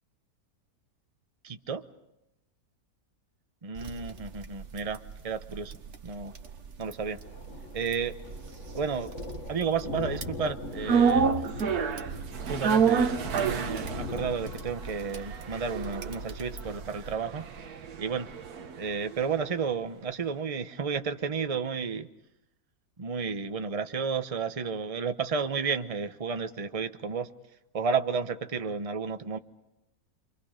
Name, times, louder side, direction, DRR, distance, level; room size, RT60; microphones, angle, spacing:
voice 1, 1.4-1.8 3.6-6.3 6.8-7.2 7.7-8.2 8.7-9.2 9.5-11.3 12.4-17.5 18.0-18.3 18.8-22.1 23.0-27.3 27.7-29.4, right 5 dB, 25° right, 9 dB, 1.0 m, -32 dB
sound 1, 3.8-17.2, right 6 dB, 50° right, 1.5 m, -45 dB
Thunder, 6.8-16.8, left 4 dB, 55° left, 2.0 m, -42 dB
sound 2, 10.9-19.2 19.4-19.5, right 6 dB, 80° right, 1.7 m, -29 dB
29.5 x 24.5 x 5.2 m, 0.88 s
omnidirectional pair, 1.6 m